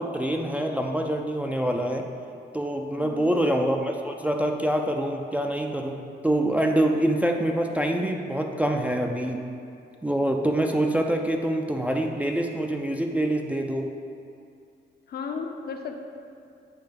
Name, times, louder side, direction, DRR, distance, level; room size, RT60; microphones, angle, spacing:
voice 1, 0.0-2.1 2.5-9.4 10.0-13.9, right 1 dB, 5° right, 2 dB, 0.3 m, -25 dB
voice 2, 3.0-3.4 15.1-16.0, left 5 dB, 50° left, 4 dB, 0.6 m, -34 dB
7.7 x 2.7 x 5.1 m, 2.4 s
cardioid pair, 90°, 20 cm